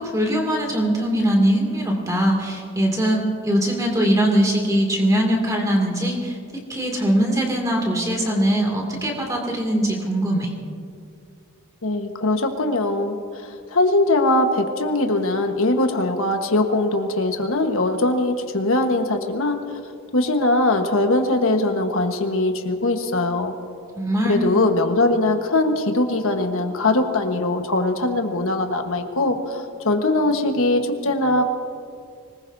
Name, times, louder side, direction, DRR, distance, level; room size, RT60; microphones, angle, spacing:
voice 1, 0.0-10.5 23.9-24.4, right 1 dB, 15° right, 0 dB, 2.4 m, -21 dB
voice 2, 11.8-19.6 20.1-23.6 24.2-31.4, left 2 dB, 75° left, 5 dB, 1.3 m, -21 dB
25.5 x 20.0 x 2.7 m, 2.3 s
head